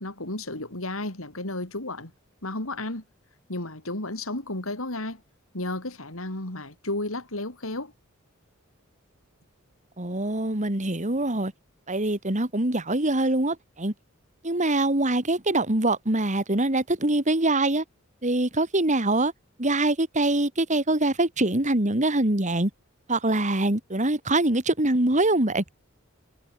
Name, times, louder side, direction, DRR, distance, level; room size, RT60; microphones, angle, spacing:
voice 1, 0.0-2.1 2.4-3.0 3.5-5.2 5.5-7.9, left 2 dB, 80° left, 4.6 m, -33 dB
voice 2, 10.0-11.5 11.9-13.9 14.4-17.8 18.2-19.3 19.6-22.7 23.1-25.6, right 2 dB, 35° right, 2.9 m, -24 dB
head